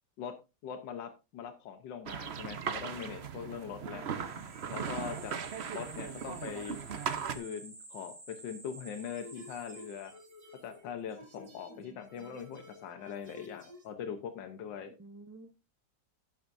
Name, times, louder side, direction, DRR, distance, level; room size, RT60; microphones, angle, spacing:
voice 1, 0.6-4.0 4.7-5.3 5.6-6.8 7.3-10.1 10.6-14.9, left 7 dB, 85° left, 7 dB, 1.7 m, -42 dB
sound 1, 2.1-7.4, right 7 dB, 50° right, 0.9 m, -38 dB
voice 2, 3.9-4.5 11.7-12.4 14.9-15.5, right 2 dB, 25° right, 8 dB, 0.3 m, -53 dB
sound 2, 4.0-10.6, right 2 dB, 5° right, 3.0 m, -51 dB
sound 3, 9.0-13.9, left 1 dB, 80° right, 3.1 m, -54 dB
12.0 x 10.5 x 2.6 m, 0.26 s
omnidirectional pair, 1.9 m